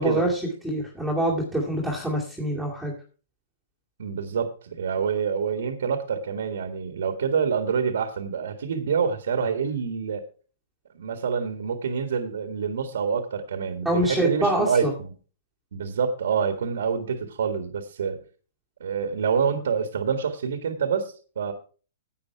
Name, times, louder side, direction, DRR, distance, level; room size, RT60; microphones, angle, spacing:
voice 1, 0.0-2.9 13.8-14.9, right 1 dB, ahead, -5 dB, 2.2 m, -25 dB
voice 2, 4.0-10.2 10.9-15.1 15.7-18.2 18.8-21.5, right 6 dB, 80° right, 7 dB, 1.8 m, -27 dB
10.5 x 8.5 x 4.6 m, 0.38 s
hypercardioid pair, 150°, 0 cm